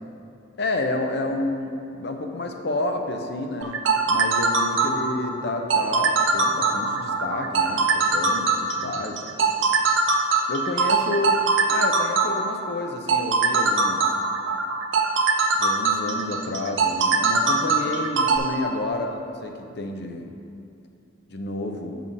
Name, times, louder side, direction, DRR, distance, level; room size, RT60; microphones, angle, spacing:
voice 1, 0.6-3.8 4.1-9.4 10.5-11.4 11.6-14.0 15.6-20.3 21.3-22.0, left 2 dB, 55° left, 4 dB, 0.7 m, -30 dB
sound 1, 3.6-18.4, right 4 dB, 70° right, 0.7 m, -21 dB
7.4 x 5.6 x 5.5 m, 2.5 s
head